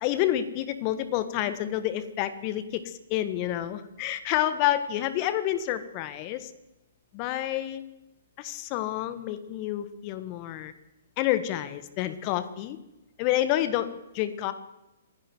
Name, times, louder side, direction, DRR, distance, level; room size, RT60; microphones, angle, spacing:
voice 1, 0.0-6.5 7.1-7.8 8.4-10.7 11.2-12.8 13.2-14.5, left 13 dB, 35° left, 12 dB, 1.6 m, -29 dB
27.5 x 11.0 x 4.6 m, 0.95 s
figure-of-eight pair, 125°, 0 cm